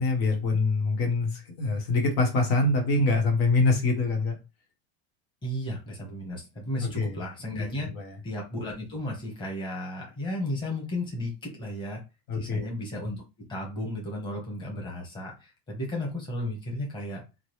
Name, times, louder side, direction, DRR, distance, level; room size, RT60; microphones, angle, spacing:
voice 1, 0.0-4.3 6.8-7.2 7.9-8.1 12.3-12.7, left 3 dB, 70° left, 1.4 m, -25 dB
voice 2, 5.4-7.9 8.2-12.0 12.4-17.2, left 1 dB, 15° left, 1.2 m, -34 dB
3.8 x 2.2 x 3.2 m
supercardioid pair, 160°, 31 cm